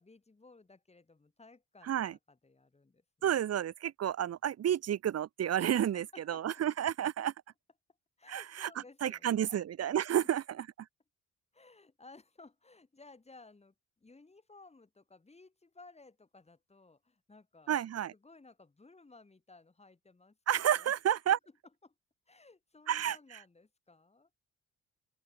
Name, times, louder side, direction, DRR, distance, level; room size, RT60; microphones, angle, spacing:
voice 1, 0.0-3.0 5.9-6.5 8.2-9.6 10.1-10.3 11.5-17.7 18.1-20.9 21.8-21.9 22.3-24.3, left 3 dB, 20° left, 6.0 m, -58 dB
voice 2, 1.8-2.1 3.2-7.3 8.3-8.7 9.0-10.7 17.7-18.1 20.5-21.4 22.9-23.2, right 10 dB, 55° right, 1.1 m, -31 dB
open air
cardioid pair, 90°, 30 cm